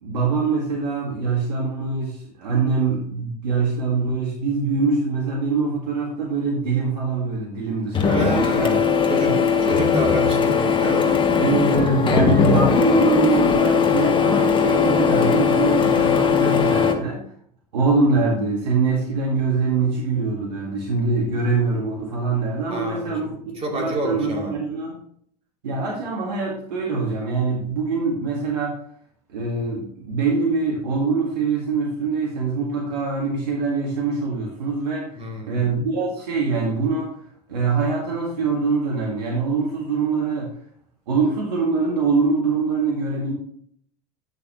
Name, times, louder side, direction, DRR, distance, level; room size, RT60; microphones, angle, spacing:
voice 1, 0.0-8.8 9.2-9.3 11.4-17.2 17.7-23.4 23.7-24.9 25.6-28.8 29.3-35.1 35.5-37.1 37.5-40.5 41.1-43.3, right 4 dB, 90° right, -2 dB, 2.0 m, -23 dB
Printer, 7.9-16.9, left 6 dB, 25° left, 1.3 m, -19 dB
voice 2, 8.1-8.7 9.1-11.1 22.7-23.3 23.5-24.6 35.1-35.6, right 1 dB, 30° right, 1 dB, 2.8 m, -29 dB
10.5 x 6.6 x 3.0 m, 0.63 s
hypercardioid pair, 105°, 20 cm